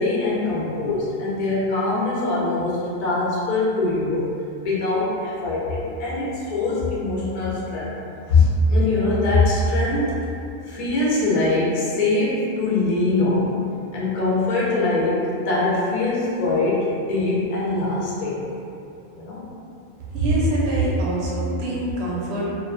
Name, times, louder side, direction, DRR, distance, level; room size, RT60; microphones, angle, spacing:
voice 1, 0.0-4.3 4.6-7.9 8.3-10.2 10.6-13.6 13.9-18.4 19.2-19.5, left 2 dB, 50° left, -6 dB, 0.4 m, -22 dB
voice 2, 20.1-22.5, right 1 dB, 70° right, -6 dB, 0.8 m, -23 dB
2.5 x 2.1 x 2.3 m, 2.7 s
omnidirectional pair, 1.2 m